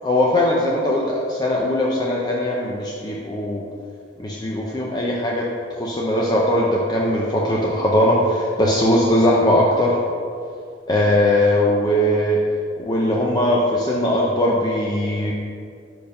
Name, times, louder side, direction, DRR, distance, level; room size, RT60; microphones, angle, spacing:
voice 1, 0.0-3.6 4.2-5.4 5.7-10.0 10.9-12.4 12.8-15.3, left 1 dB, 20° left, -4 dB, 0.5 m, -20 dB
5.0 x 4.7 x 5.2 m, 2.2 s
head